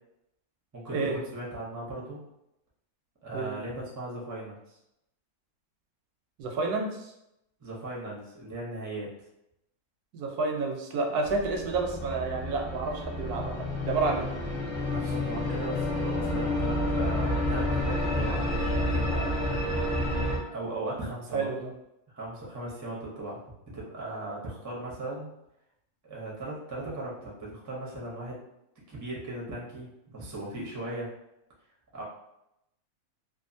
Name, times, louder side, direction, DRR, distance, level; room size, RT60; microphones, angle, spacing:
voice 1, 0.7-2.2 3.2-4.8 7.6-9.1 14.1-14.2 14.9-19.3 20.5-21.5 22.1-23.4 23.7-25.3 26.0-28.4 28.9-31.1 31.9-32.0, right 2 dB, 25° right, -4 dB, 0.4 m, -38 dB
voice 2, 6.4-7.1 10.1-14.3 21.3-21.7, right 3 dB, 90° right, 1 dB, 1.1 m, -30 dB
sound 1, 11.3-20.4, left 1 dB, 40° left, 0.9 m, -29 dB
2.7 x 2.4 x 2.6 m, 0.83 s
omnidirectional pair, 1.6 m